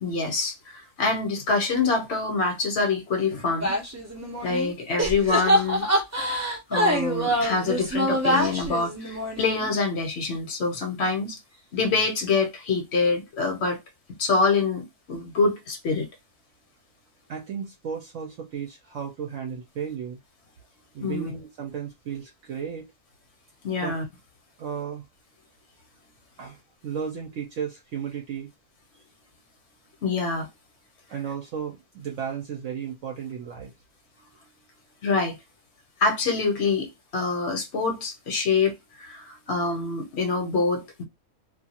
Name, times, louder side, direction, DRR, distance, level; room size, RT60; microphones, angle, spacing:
voice 1, 0.0-3.7 4.4-5.8 6.7-11.4 11.7-13.8 14.2-16.1 21.0-21.3 23.6-24.0 30.0-30.5 35.0-35.4 36.0-36.9 37.1-41.0, left 4 dB, 55° left, 1.0 m, -25 dB
sound 1, 3.6-4.7 5.0-9.7, equal, 20° right, 0.4 m, -25 dB
voice 2, 17.3-20.2 20.9-22.9 23.8-23.9 24.6-25.0 26.4-26.6 26.8-28.5 31.1-33.7, right 7 dB, 65° right, 0.9 m, -34 dB
2.6 x 2.3 x 2.8 m
omnidirectional pair, 1.5 m